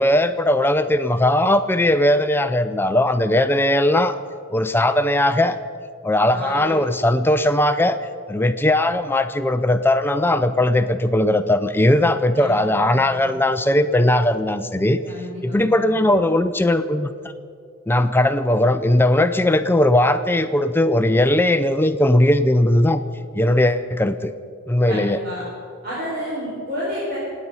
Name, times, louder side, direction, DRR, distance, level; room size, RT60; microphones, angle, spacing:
voice 1, 0.0-4.2 4.5-5.6 6.0-8.0 8.3-15.0 15.4-17.1 17.9-23.0 23.3-24.3 24.7-25.2, left 1 dB, 10° left, 10 dB, 0.5 m, -18 dB
voice 2, 6.3-6.8 12.3-13.2 15.0-15.8 24.9-25.4 25.8-27.2, equal, 45° right, -8 dB, 4.5 m, -31 dB
27.0 x 9.5 x 5.5 m, 2.3 s
head